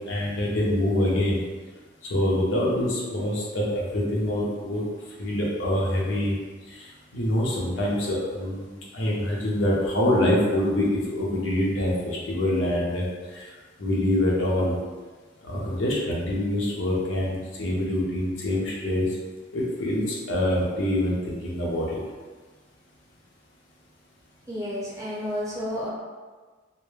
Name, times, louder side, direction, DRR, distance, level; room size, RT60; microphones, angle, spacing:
voice 1, 0.1-1.4 2.1-4.8 5.2-6.4 6.7-8.6 8.9-13.5 13.8-14.8 15.4-19.1 19.5-22.0, left 1 dB, 80° left, -4 dB, 0.6 m, -25 dB
voice 2, 24.5-25.9, equal, 15° right, -7 dB, 0.6 m, -31 dB
2.1 x 2.1 x 3.1 m, 1.4 s
head